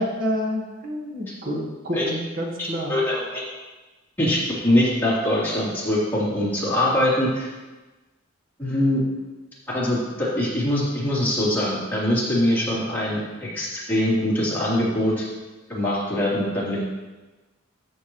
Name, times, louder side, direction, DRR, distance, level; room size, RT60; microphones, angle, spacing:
voice 1, 0.0-3.0, equal, 45° right, 0 dB, 1.5 m, -28 dB
voice 2, 2.6-3.4 4.2-7.5 8.6-9.0 9.7-15.2 15.7-16.8, left 1 dB, 10° left, -9 dB, 3.2 m, -23 dB
13.0 x 7.0 x 3.1 m, 1.2 s
head